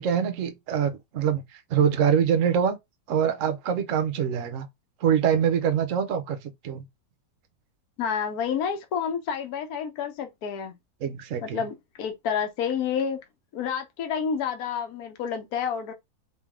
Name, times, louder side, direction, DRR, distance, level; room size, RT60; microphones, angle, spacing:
voice 1, 0.0-1.4 1.7-2.8 3.1-4.7 5.0-6.4 6.6-6.8 11.0-11.6, right 8 dB, 60° right, 0.8 m, -24 dB
voice 2, 8.0-10.7 11.4-13.2 13.5-15.9, left 7 dB, 55° left, 1.3 m, -29 dB
4.0 x 3.4 x 3.5 m
omnidirectional pair, 2.1 m